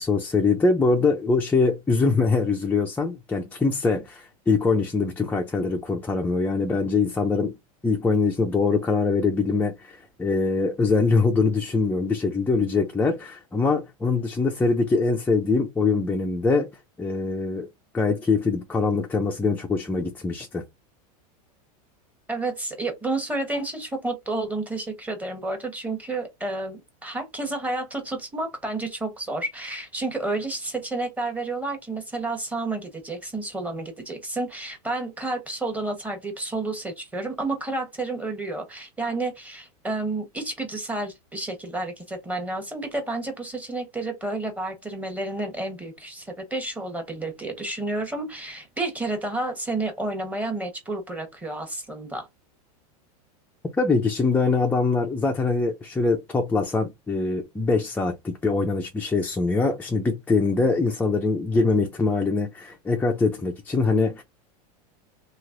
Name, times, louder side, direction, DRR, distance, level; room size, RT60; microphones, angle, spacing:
voice 1, 0.0-7.5 7.8-16.7 17.0-17.7 17.9-20.6 53.8-64.2, left 4 dB, 10° left, 0.5 m, -23 dB
voice 2, 22.3-52.3, right 2 dB, 5° right, 1.2 m, -30 dB
3.1 x 2.9 x 2.6 m
hypercardioid pair, 120°, 20 cm